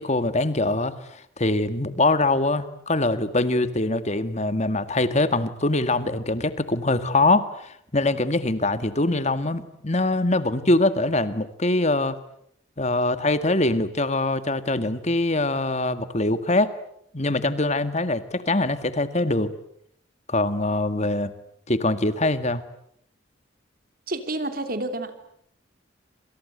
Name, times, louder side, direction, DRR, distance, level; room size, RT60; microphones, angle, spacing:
voice 1, 0.0-12.2 12.8-16.7 17.1-19.5 20.3-21.3 21.7-22.6, left 2 dB, 35° left, 12 dB, 1.8 m, -23 dB
voice 2, 24.1-25.3, right 2 dB, 50° right, 9 dB, 3.0 m, -30 dB
27.5 x 27.0 x 8.0 m, 0.71 s
head